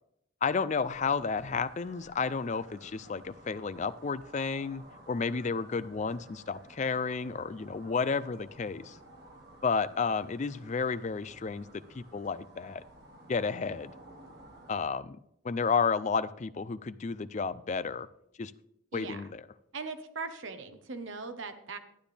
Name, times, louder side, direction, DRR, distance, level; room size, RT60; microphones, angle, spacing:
voice 1, 0.4-9.0 9.6-12.8 13.3-13.9 14.7-15.2 15.4-18.1 18.4-18.5 18.9-19.4, left 5 dB, 35° left, 15 dB, 0.4 m, -32 dB
sound 1, 0.7-14.8, right 1 dB, 50° right, 1.9 m, -54 dB
voice 2, 19.7-21.8, right 4 dB, 70° right, 8 dB, 1.1 m, -39 dB
12.0 x 10.0 x 3.4 m, 0.80 s
head